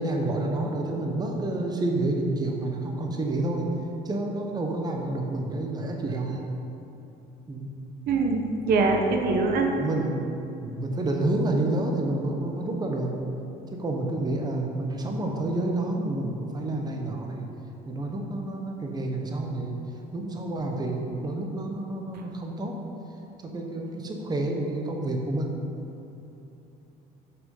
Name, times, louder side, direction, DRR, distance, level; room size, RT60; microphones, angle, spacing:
voice 1, 0.0-3.7 4.0-6.4 7.5-7.7 9.8-10.2 10.6-13.1 13.7-17.5 17.9-19.8 20.1-22.8 23.4-25.6, right 2 dB, 25° right, 1 dB, 1.0 m, -29 dB
voice 2, 8.1-9.7, right 3 dB, 65° right, 2 dB, 1.0 m, -23 dB
6.2 x 6.1 x 5.4 m, 2.9 s
cardioid pair, 105°, 17 cm